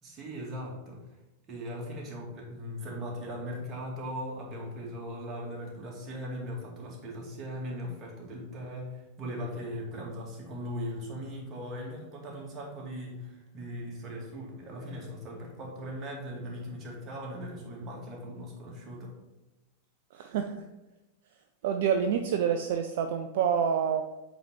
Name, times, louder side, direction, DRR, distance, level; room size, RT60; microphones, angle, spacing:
voice 1, 0.0-1.0 1.5-19.1, equal, 25° right, -2 dB, 2.3 m, -39 dB
voice 2, 20.1-20.7 21.6-24.0, right 7 dB, 55° right, 6 dB, 0.4 m, -27 dB
8.0 x 4.1 x 4.6 m, 1.0 s
figure-of-eight pair, 90°, 0 cm